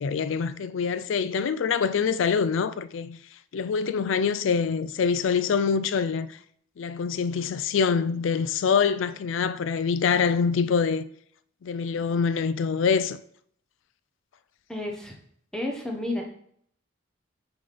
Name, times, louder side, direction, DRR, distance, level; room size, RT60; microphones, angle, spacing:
voice 1, 0.0-3.2 3.5-6.4 6.8-11.0 11.6-13.2, left 6 dB, 75° left, 0.4 m, -25 dB
voice 2, 14.7-15.1 15.5-16.2, left 1 dB, 5° left, 1.0 m, -31 dB
8.6 x 4.1 x 3.5 m
head